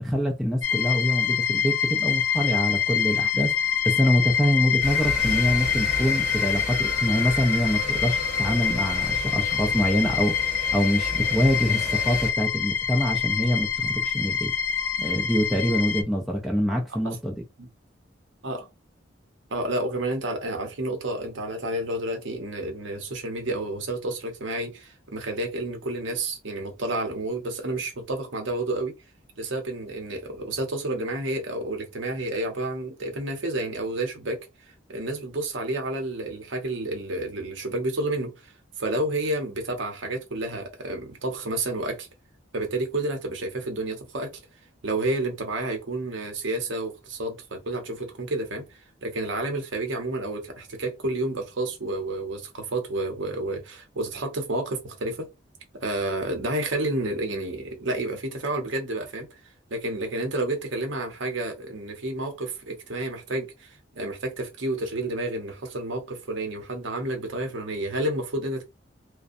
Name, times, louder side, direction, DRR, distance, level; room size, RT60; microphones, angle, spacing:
voice 1, 0.0-3.5 3.8-10.3 10.7-14.5 15.0-17.4, equal, ahead, 0.3 m, -25 dB
sound 1, 0.6-16.0, left 8 dB, 70° left, 0.4 m, -26 dB
sound 2, 4.8-12.3, equal, 35° right, 1.0 m, -34 dB
voice 2, 19.5-28.9 29.4-34.4 34.9-42.1 42.5-44.3 44.8-55.3 55.7-59.3 59.7-68.6, right 2 dB, 70° right, 0.7 m, -30 dB
2.5 x 2.1 x 2.5 m
head